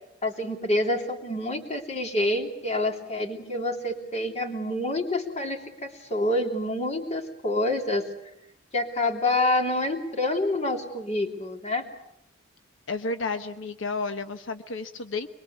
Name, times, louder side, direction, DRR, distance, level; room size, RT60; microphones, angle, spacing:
voice 1, 0.2-8.1 8.7-11.8, left 1 dB, 35° left, 3 dB, 3.1 m, -27 dB
voice 2, 12.9-15.3, left 3 dB, 85° left, 9 dB, 1.1 m, -31 dB
24.5 x 22.5 x 8.3 m, 0.80 s
head